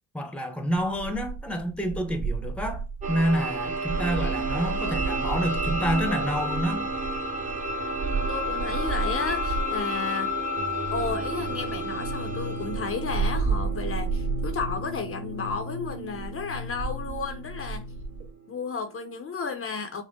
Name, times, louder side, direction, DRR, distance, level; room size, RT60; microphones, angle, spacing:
voice 1, 0.1-6.9, equal, 5° left, 0.8 m, -28 dB
sound 1, 0.8-9.9 10.8-18.3, right 4 dB, 65° right, 2.1 m, -33 dB
sound 2, 3.0-18.6, right 1 dB, 25° right, 1.0 m, -32 dB
voice 2, 8.0-10.4 10.9-17.9 18.5-20.0, left 5 dB, 45° left, 0.7 m, -33 dB
sound 3, 10.6-18.2, left 3 dB, 45° right, 1.3 m, -38 dB
6.2 x 2.1 x 3.6 m
cardioid pair, 105°, 32 cm